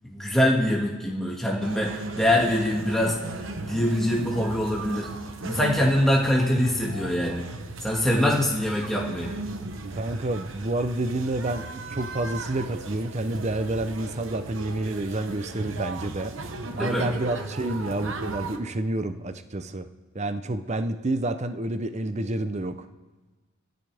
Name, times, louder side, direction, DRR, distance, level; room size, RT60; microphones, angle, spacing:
voice 1, 0.0-3.2 3.6-5.1 5.4-7.5 7.8-9.3 16.7-17.1, left 1 dB, ahead, -3 dB, 2.0 m, -24 dB
sound 1, 1.6-18.6, right 2 dB, 65° right, 1.0 m, -37 dB
voice 2, 9.9-16.3 16.8-19.9 20.1-22.9, right 2 dB, 30° right, 10 dB, 0.6 m, -29 dB
25.5 x 10.5 x 3.5 m, 1.2 s
head